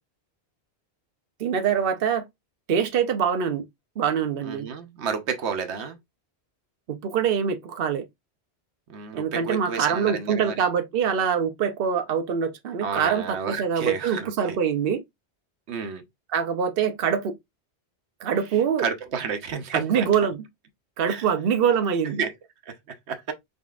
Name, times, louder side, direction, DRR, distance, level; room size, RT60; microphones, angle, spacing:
voice 1, 1.4-2.3 2.7-3.7 4.0-4.7 6.9-8.0 9.1-15.0 16.3-17.3 18.2-18.8 19.7-20.4 21.0-22.2, right 7 dB, 60° right, 0.9 m, -24 dB
voice 2, 4.4-6.0 8.9-10.5 12.8-14.6 15.7-16.0 18.8-20.1 21.1-21.3 22.2-22.3 22.7-22.8 23.1-23.3, right 6 dB, 85° right, 1.1 m, -31 dB
3.9 x 3.7 x 2.4 m
omnidirectional pair, 1.1 m